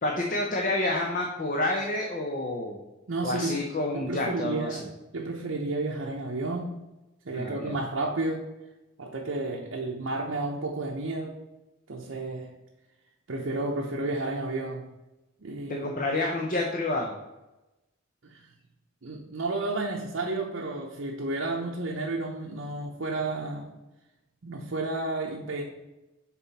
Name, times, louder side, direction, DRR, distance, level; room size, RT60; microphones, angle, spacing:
voice 1, 0.0-2.8 3.2-4.8 7.3-7.8 15.7-17.1, left 2 dB, 40° left, 1 dB, 0.7 m, -29 dB
voice 2, 3.1-3.6 3.9-4.8 5.1-6.7 7.2-8.5 9.0-11.4 11.9-12.5 13.3-14.9 15.4-15.9 18.2-18.5 19.0-23.7 24.4-25.7, right 2 dB, 60° right, -1 dB, 0.7 m, -31 dB
5.9 x 4.1 x 4.1 m, 1.0 s
head